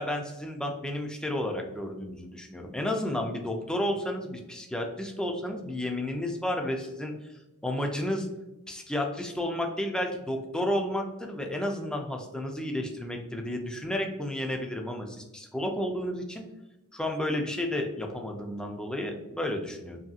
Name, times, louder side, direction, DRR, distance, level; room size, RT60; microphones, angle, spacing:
voice 1, 0.0-8.3 8.7-16.5 16.9-20.0, left 1 dB, 5° left, 2 dB, 0.3 m, -32 dB
3.0 x 2.7 x 2.4 m, 1.0 s
head